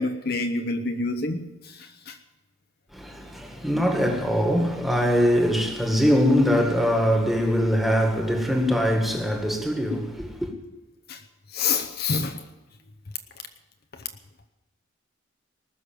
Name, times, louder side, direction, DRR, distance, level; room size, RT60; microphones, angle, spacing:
voice 1, 0.0-2.2 11.1-11.2 11.5-12.4, left 4 dB, 50° left, 0.9 m, -27 dB
voice 2, 2.9-10.5, equal, ahead, 1.8 m, -22 dB
19.5 x 6.6 x 9.2 m
head